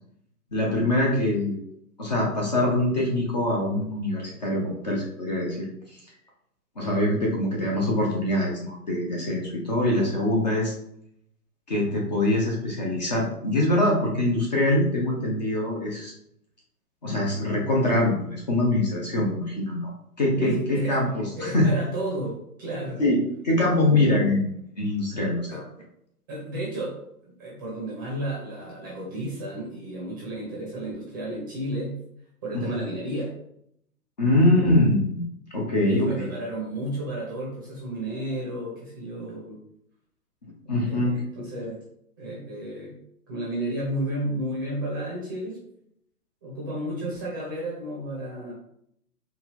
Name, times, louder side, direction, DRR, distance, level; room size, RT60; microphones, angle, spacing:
voice 1, 0.5-1.6 2.0-5.7 6.8-10.7 11.7-16.1 17.0-19.9 20.2-21.7 23.0-25.6 32.5-32.6 34.2-36.3 40.4-41.2, left 1 dB, 30° left, -3 dB, 0.6 m, -24 dB
voice 2, 20.4-21.0 21.3-23.0 25.5-25.6 26.3-27.0 27.2-31.9 32.4-33.3 34.3-34.7 35.8-39.6 40.7-41.8 42.2-42.9 43.3-45.6 46.4-48.5, right 1 dB, 15° right, -5 dB, 0.6 m, -32 dB
4.4 x 2.4 x 3.6 m, 0.73 s
hypercardioid pair, 155°, 47 cm